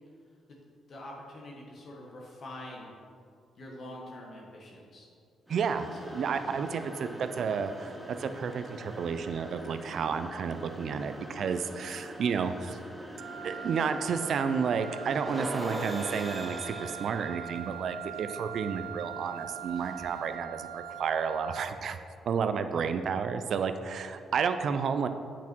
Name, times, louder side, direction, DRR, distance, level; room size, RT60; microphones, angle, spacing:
voice 1, 0.9-2.9 3.5-5.1 6.0-6.7, left 1 dB, 50° left, -2 dB, 1.3 m, -45 dB
sound 1, 5.5-20.4, equal, ahead, 1.1 m, -43 dB
voice 2, 5.5-12.8 13.4-22.0 22.3-25.1, right 6 dB, 60° right, 9 dB, 0.5 m, -31 dB
Wind instrument woodwind instrument, 13.2-21.9, right 9 dB, 90° right, 0.8 m, -42 dB
8.3 x 5.9 x 4.5 m, 2.3 s
cardioid pair, 105°, 0 cm